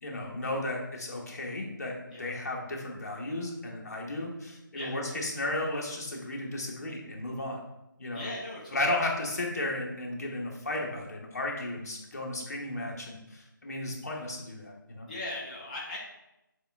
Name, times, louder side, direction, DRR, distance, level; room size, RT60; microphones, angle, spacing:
voice 1, 0.0-7.6 8.0-8.3 8.7-15.1, left 1 dB, 50° left, -1 dB, 1.0 m, -34 dB
voice 2, 8.1-9.0 15.1-16.0, left 2 dB, 20° left, -5 dB, 0.4 m, -38 dB
6.7 x 2.3 x 3.4 m, 0.91 s
figure-of-eight pair, 170°, 11 cm